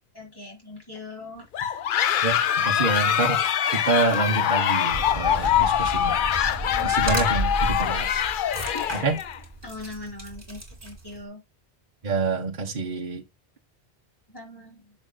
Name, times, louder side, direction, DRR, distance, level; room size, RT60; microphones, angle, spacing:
voice 1, 0.1-1.5 6.7-6.9 8.3-9.0 9.6-11.4 14.3-14.9, left 2 dB, 20° left, 5.3 m, -40 dB
sound 1, 1.5-9.4, left 10 dB, 60° left, 0.7 m, -24 dB
voice 2, 2.2-3.4 3.7-6.2 6.8-8.2 9.0-9.2 12.0-13.2, right 3 dB, 50° right, 1.1 m, -27 dB
sound 2, 4.9-11.2, right 2 dB, 25° right, 2.6 m, -33 dB
10.5 x 6.4 x 2.3 m
omnidirectional pair, 1.0 m